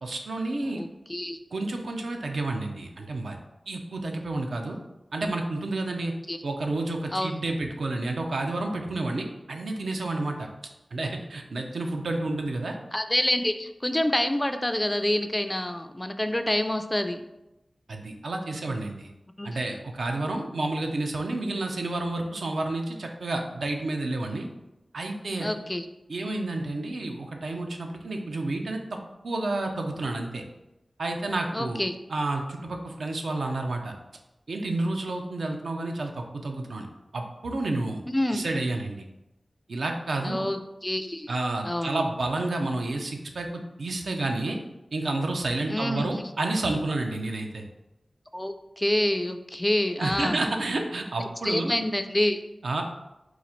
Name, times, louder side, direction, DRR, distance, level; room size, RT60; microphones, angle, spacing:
voice 1, 0.0-0.8 1.5-3.4 3.7-4.8 5.1-6.1 6.4-10.5 10.9-12.8 17.9-19.1 19.4-24.5 24.9-25.5 26.1-29.0 29.2-30.4 31.0-31.8 32.1-33.9 34.5-36.9 37.1-38.0 38.3-39.0 39.7-40.5 41.3-43.5 43.8-44.6 44.9-47.6 50.0-51.7 52.6-52.8, right 2 dB, 85° right, 3 dB, 0.5 m, -30 dB
voice 2, 0.6-1.4 6.3-6.4 7.1-7.3 12.9-17.2 19.4-19.5 25.4-25.8 31.5-31.9 38.1-38.4 40.2-41.3 41.6-42.0 45.7-46.1 48.3-50.4 51.4-52.4, left 1 dB, 20° left, 8 dB, 0.3 m, -27 dB
4.0 x 2.4 x 4.3 m, 0.92 s
wide cardioid pair, 65°, 0 cm